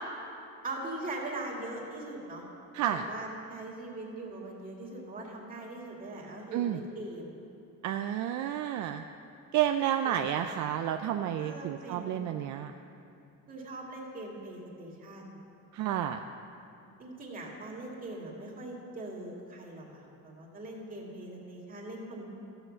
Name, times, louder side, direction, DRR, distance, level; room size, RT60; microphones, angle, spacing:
voice 1, 0.6-2.4 2.8-7.4 9.8-10.3 11.4-12.5 13.5-15.4 17.0-22.3, right 2 dB, 25° right, -2 dB, 2.4 m, -41 dB
voice 2, 6.5-6.8 7.8-9.0 9.5-12.7 15.7-16.2, right 11 dB, 65° right, 6 dB, 0.5 m, -30 dB
13.5 x 7.9 x 6.6 m, 2.7 s
cardioid pair, 140°, 32 cm